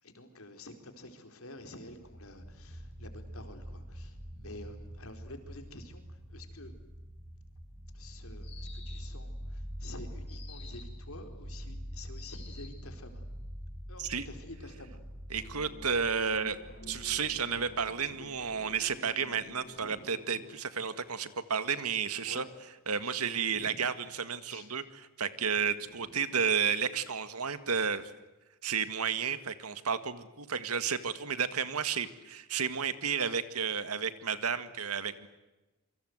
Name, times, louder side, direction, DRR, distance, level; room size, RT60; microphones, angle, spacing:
voice 1, 0.0-6.7 7.9-13.2 13.9-15.0 16.2-16.3 19.7-20.0 22.2-22.5 23.0-23.2 23.5-23.9 24.5-24.7 25.8-26.1, left 1 dB, 75° left, 6 dB, 4.4 m, -49 dB
sound 1, 1.7-19.1, equal, 45° right, 7.2 m, -45 dB
sound 2, 8.4-9.2 10.3-11.0 12.1-12.8, left 6 dB, 25° left, 6.0 m, -52 dB
sound 3, 15.3-20.6, left 1 dB, 45° left, 1.8 m, -51 dB
voice 2, 15.3-16.6 16.9-22.4 22.9-28.0 28.6-35.3, right 6 dB, 85° right, 11 dB, 1.9 m, -32 dB
28.0 x 25.0 x 8.1 m, 1.1 s
head